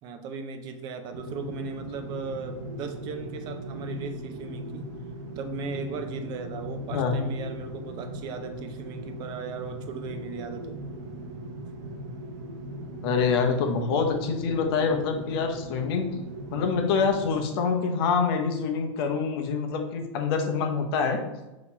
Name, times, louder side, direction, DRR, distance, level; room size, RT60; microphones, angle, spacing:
voice 1, 0.0-4.9 5.4-10.8, right 4 dB, 25° right, 7 dB, 0.4 m, -37 dB
sound 1, 1.1-17.4, right 1 dB, 55° right, 0.8 m, -38 dB
voice 2, 6.9-7.2 13.0-16.2 16.5-21.2, left 5 dB, 50° left, 4 dB, 0.7 m, -26 dB
4.2 x 2.9 x 4.1 m, 1.0 s
supercardioid pair, 155°, 16 cm